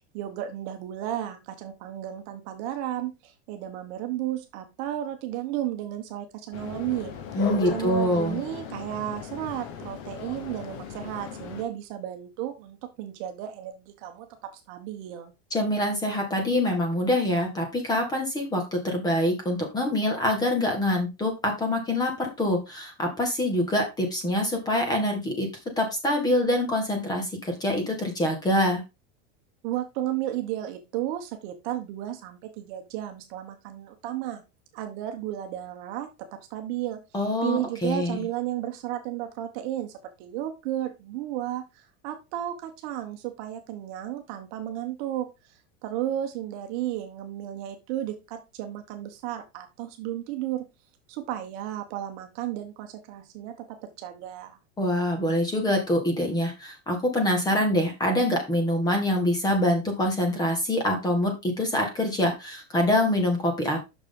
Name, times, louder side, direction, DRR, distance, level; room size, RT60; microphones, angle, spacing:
voice 1, 0.1-7.1 7.7-15.3 29.6-34.4 34.7-37.0 37.4-45.5 45.8-50.7 51.1-54.6, right 12 dB, 45° right, 5 dB, 1.2 m, -33 dB
sound 1, 6.5-11.6, left 7 dB, 40° left, 1.2 m, -37 dB
voice 2, 7.3-8.4 15.5-25.5 25.8-28.8 37.1-38.2 54.8-63.8, left 1 dB, 10° left, 3 dB, 1.9 m, -25 dB
6.4 x 6.3 x 3.8 m, 0.25 s
supercardioid pair, 165°, 33 cm